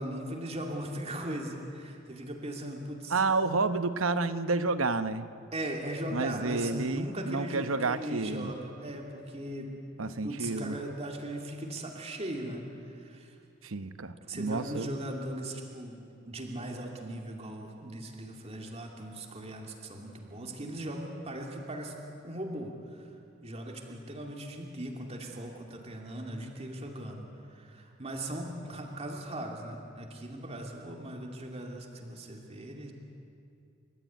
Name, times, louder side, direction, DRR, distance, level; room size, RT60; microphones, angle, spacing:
voice 1, 0.0-3.2 5.5-13.4 14.2-16.0 16.3-23.1 23.4-32.9, right 1 dB, 30° right, 1 dB, 2.6 m, -39 dB
voice 2, 3.1-5.3 6.1-8.5 10.0-10.8 13.6-14.9, right 3 dB, 85° right, 11 dB, 1.0 m, -30 dB
29.5 x 14.0 x 9.4 m, 2.6 s
head